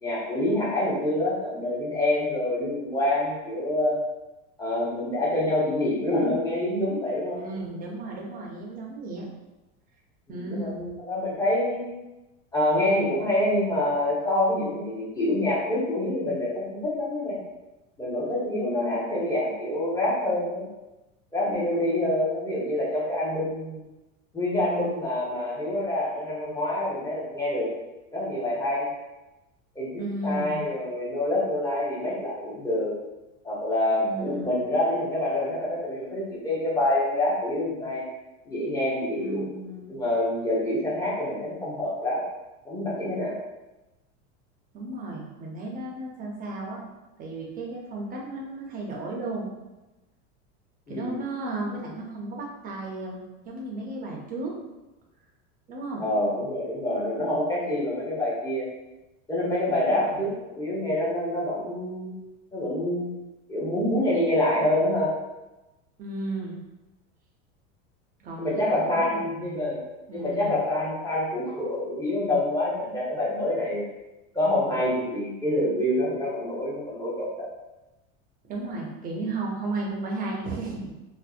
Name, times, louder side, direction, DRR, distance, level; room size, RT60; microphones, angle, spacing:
voice 1, 0.0-4.0 4.6-7.4 10.3-11.8 12.5-17.4 18.0-20.7 21.3-23.8 24.3-27.7 28.1-28.9 29.7-32.9 33.4-38.0 38.5-39.4 39.9-42.2 42.6-43.3 50.9-51.2 56.0-58.7 59.3-62.1 62.5-63.1 63.5-65.1 68.4-69.8 70.1-73.8 74.3-77.5, left 1 dB, 10° left, -6 dB, 0.7 m, -26 dB
voice 2, 7.4-9.3 10.3-10.8 30.0-30.6 34.0-34.5 39.2-39.9 44.7-46.8 47.2-49.5 50.9-54.5 55.7-56.0 59.8-60.3 66.0-66.6 68.2-69.8 70.1-70.6 78.5-80.9, right 2 dB, 25° right, -1 dB, 0.5 m, -34 dB
2.6 x 2.0 x 2.3 m, 1.0 s
supercardioid pair, 125°, 35 cm